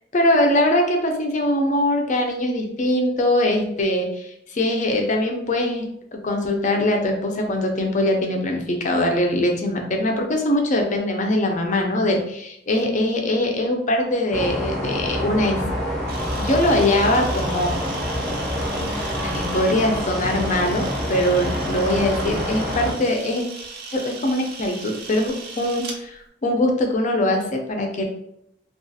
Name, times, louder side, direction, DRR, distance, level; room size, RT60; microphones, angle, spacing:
voice 1, 0.1-5.8 6.1-15.6 16.4-17.8 19.2-23.4 23.9-28.0, left 1 dB, 40° left, 2 dB, 0.5 m, -22 dB
sound 1, 14.3-22.9, equal, 5° left, 0.7 m, -26 dB
Camera, 16.1-26.0, right 4 dB, 55° right, 0.5 m, -37 dB
2.4 x 2.3 x 2.6 m, 0.75 s
head